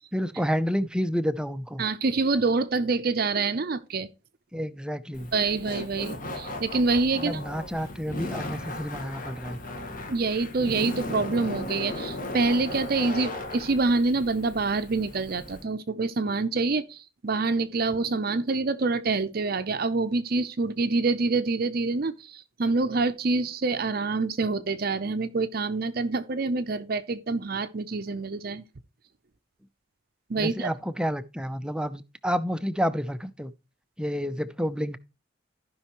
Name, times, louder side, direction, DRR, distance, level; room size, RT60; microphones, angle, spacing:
voice 1, 0.1-1.8 4.5-5.3 7.1-9.6 30.4-33.5 34.0-35.0, equal, 5° right, 0.5 m, -29 dB
voice 2, 1.8-4.1 5.3-7.4 10.1-28.6 30.3-30.7, right 3 dB, 50° right, 0.6 m, -26 dB
Laughter, 5.1-15.6, left 1 dB, 45° left, 1.6 m, -37 dB
14.5 x 5.5 x 3.0 m
head